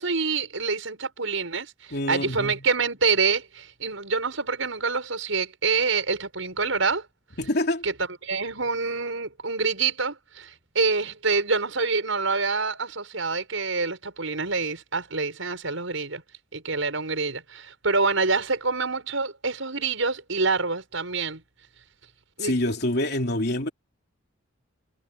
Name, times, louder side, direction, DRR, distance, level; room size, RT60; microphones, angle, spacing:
voice 1, 0.0-7.1 7.8-7.9 8.2-16.2 16.5-21.4 22.4-22.5, right 4 dB, 90° right, 5.7 m, -26 dB
voice 2, 1.9-2.6 7.4-7.8 22.4-23.7, left 1 dB, 55° left, 3.2 m, -26 dB
head